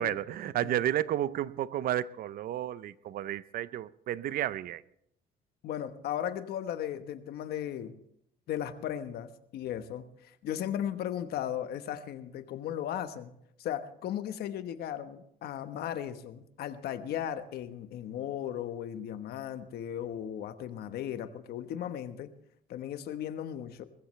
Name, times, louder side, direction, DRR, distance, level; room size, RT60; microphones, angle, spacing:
voice 1, 0.0-4.8, right 12 dB, 60° right, 0.6 m, -32 dB
voice 2, 5.6-8.0 8.5-13.3 13.6-22.3 22.7-23.8, left 10 dB, 70° left, 1.2 m, -36 dB
20.5 x 15.0 x 3.2 m
cardioid pair, 110°, 17 cm